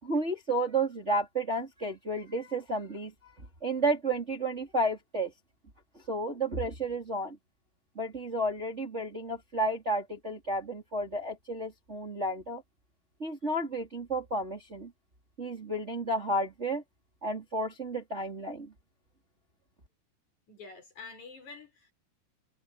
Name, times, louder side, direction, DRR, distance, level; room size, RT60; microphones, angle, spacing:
voice 1, 0.0-3.3 3.6-5.3 6.1-7.4 8.0-12.6 13.2-14.9 15.4-16.8 17.2-18.7, right 1 dB, 15° right, 3.6 m, -32 dB
voice 2, 20.5-21.9, left 4 dB, 45° left, 6.4 m, -47 dB
omnidirectional pair, 4.7 m